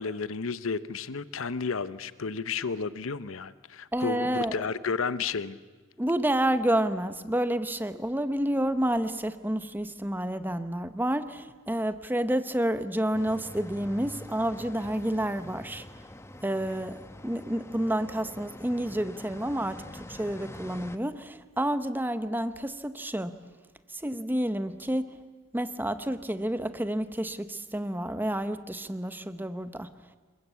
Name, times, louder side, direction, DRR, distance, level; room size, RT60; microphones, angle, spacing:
voice 1, 0.0-5.6, left 5 dB, 75° left, 0.8 m, -32 dB
voice 2, 3.9-4.7 6.0-15.8 16.4-23.4 23.9-25.2 25.5-29.9, right 1 dB, 10° right, 1.0 m, -29 dB
sound 1, 13.1-21.0, left 1 dB, 15° left, 1.0 m, -45 dB
27.5 x 22.0 x 8.3 m
head